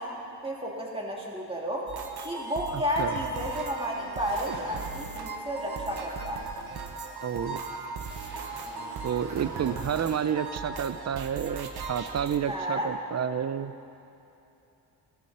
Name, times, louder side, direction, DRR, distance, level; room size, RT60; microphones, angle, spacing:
voice 1, 0.0-1.9 2.2-6.5 12.5-12.9, equal, 15° right, -3 dB, 3.3 m, -32 dB
sound 1, 1.9-12.4, right 4 dB, 65° right, 1.4 m, -38 dB
voice 2, 2.7-3.2 7.2-7.8 9.0-13.7, right 8 dB, 40° right, 13 dB, 0.7 m, -30 dB
sound 2, 2.9-5.1 5.5-10.2, right 1 dB, 80° right, 4.3 m, -50 dB
19.0 x 14.0 x 4.3 m, 2.9 s
cardioid pair, 75°, 41 cm